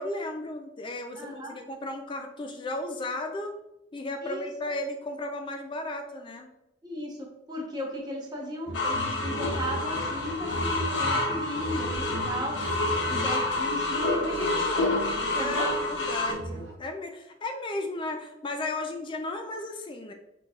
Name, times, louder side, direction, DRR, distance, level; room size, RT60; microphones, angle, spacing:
voice 1, 0.0-3.5 3.9-6.5 15.4-20.1, left 2 dB, 25° left, 5 dB, 0.3 m, -34 dB
voice 2, 1.2-1.5 4.2-4.7 6.8-12.6 13.0-14.9 15.2-15.7, equal, 20° right, -2 dB, 0.8 m, -36 dB
sound 1, 8.7-16.3, left 2 dB, 60° left, 0.7 m, -28 dB
sound 2, 8.7-16.7, right 1 dB, 60° right, 0.7 m, -37 dB
4.6 x 4.0 x 2.3 m, 0.91 s
head